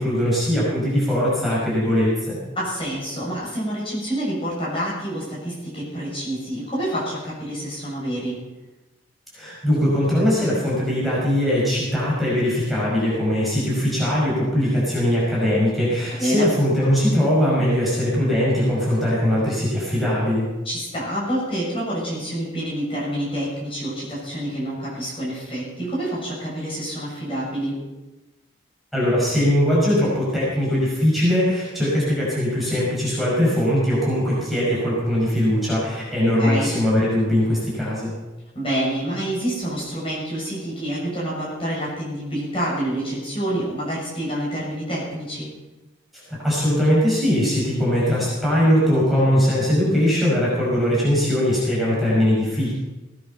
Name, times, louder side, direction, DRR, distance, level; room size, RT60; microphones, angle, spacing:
voice 1, 0.0-2.4 9.3-20.5 28.9-38.1 46.3-52.7, equal, ahead, -7 dB, 5.9 m, -20 dB
voice 2, 2.5-8.4 16.2-16.5 20.6-27.8 36.4-36.7 38.5-45.5, right 1 dB, 30° left, -6 dB, 6.8 m, -27 dB
17.5 x 10.5 x 5.7 m, 1.1 s
head